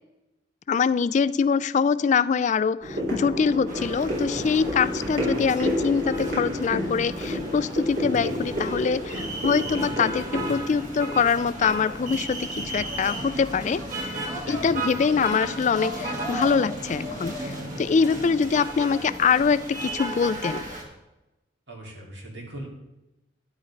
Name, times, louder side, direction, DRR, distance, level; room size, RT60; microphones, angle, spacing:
voice 1, 0.7-20.7, left 6 dB, 40° left, 17 dB, 0.3 m, -24 dB
sound 1, 2.8-12.2 12.5-12.6, left 1 dB, 60° right, 4.8 m, -30 dB
sound 2, 3.7-20.8, right 1 dB, 45° right, 2.5 m, -34 dB
voice 2, 21.7-22.7, right 1 dB, 80° right, -2 dB, 3.9 m, -39 dB
12.5 x 10.5 x 3.9 m, 0.98 s
head